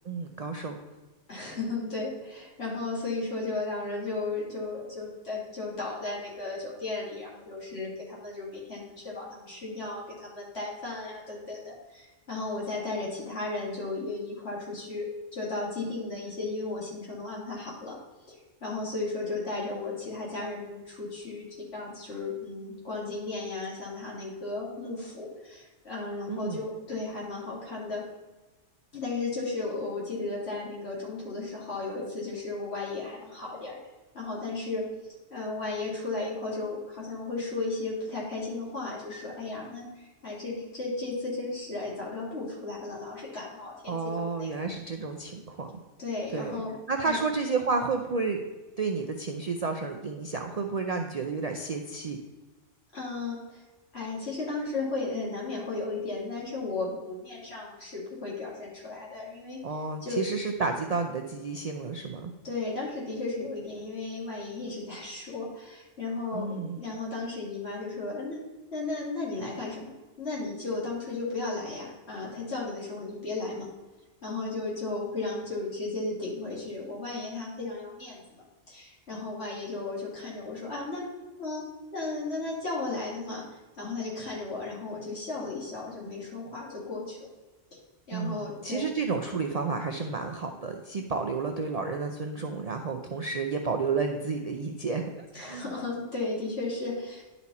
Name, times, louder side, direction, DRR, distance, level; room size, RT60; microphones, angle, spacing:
voice 1, 0.0-0.8 26.3-26.6 43.9-45.7 46.3-46.6 46.9-48.4 48.8-52.2 59.6-62.3 66.3-66.8 88.1-95.7, right 4 dB, 50° right, 4 dB, 0.4 m, -31 dB
voice 2, 1.3-15.0 15.3-18.0 18.3-28.0 28.9-33.8 34.1-44.7 46.0-46.7 47.0-47.2 52.9-53.6 53.9-60.2 62.4-68.4 68.7-69.9 70.2-73.7 74.2-81.1 81.4-87.3 87.7-87.8 88.1-88.9 95.3-97.2, left 3 dB, 60° left, -6 dB, 2.8 m, -35 dB
11.0 x 4.2 x 4.1 m, 1.2 s
omnidirectional pair, 1.2 m